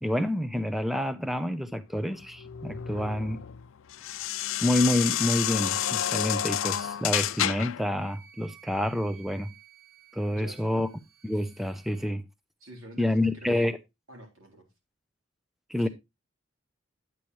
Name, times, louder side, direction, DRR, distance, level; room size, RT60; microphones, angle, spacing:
voice 1, 0.0-3.4 4.6-9.5 10.1-10.9 11.2-12.2 13.0-13.8 15.7-15.9, left 1 dB, ahead, 0.5 m, -28 dB
sound 1, 2.0-7.9, left 11 dB, 85° left, 0.5 m, -30 dB
Wind instrument woodwind instrument, 7.9-12.1, right 9 dB, 20° right, 2.2 m, -55 dB
voice 2, 10.3-10.8 12.6-13.7 14.1-14.7 15.8-15.9, right 1 dB, 85° right, 3.6 m, -46 dB
10.0 x 8.3 x 3.1 m
head